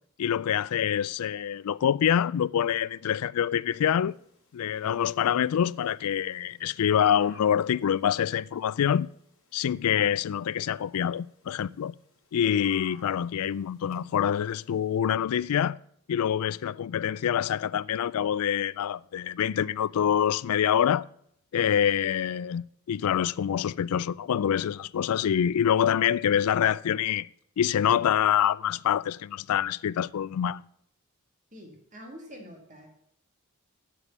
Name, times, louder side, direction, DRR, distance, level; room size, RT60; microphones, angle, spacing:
voice 1, 0.2-4.1 4.5-9.1 9.5-11.9 12.3-15.8 16.1-21.1 21.5-27.3 27.6-30.6, left 9 dB, 80° left, 0.3 m, -26 dB
sound 1, 4.1-15.0, left 3 dB, 60° left, 2.7 m, -58 dB
voice 2, 31.5-32.9, equal, 35° right, 2.3 m, -46 dB
8.4 x 6.9 x 7.2 m
head